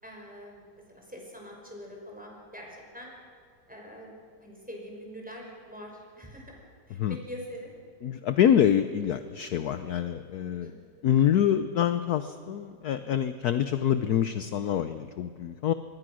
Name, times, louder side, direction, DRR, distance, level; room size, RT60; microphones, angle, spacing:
voice 1, 0.0-3.1 3.7-6.5 6.9-7.7 10.6-11.0, equal, 5° right, -1 dB, 5.3 m, -44 dB
voice 2, 8.0-10.7 11.0-15.7, left 9 dB, 65° left, 11 dB, 1.2 m, -26 dB
26.0 x 21.5 x 6.3 m, 2.3 s
omnidirectional pair, 2.0 m